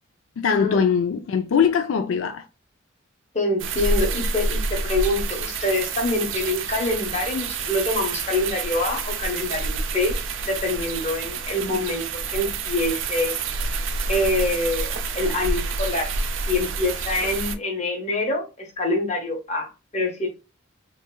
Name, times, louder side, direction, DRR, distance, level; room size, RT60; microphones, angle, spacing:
voice 1, 0.4-2.4, left 6 dB, 85° left, 0.4 m, -21 dB
voice 2, 3.3-10.2 10.5-13.3 14.1-16.1 16.5-20.3, left 2 dB, 35° left, 1.0 m, -25 dB
sound 1, 3.6-17.5, right 4 dB, 65° right, 0.5 m, -28 dB
3.2 x 3.2 x 2.2 m
head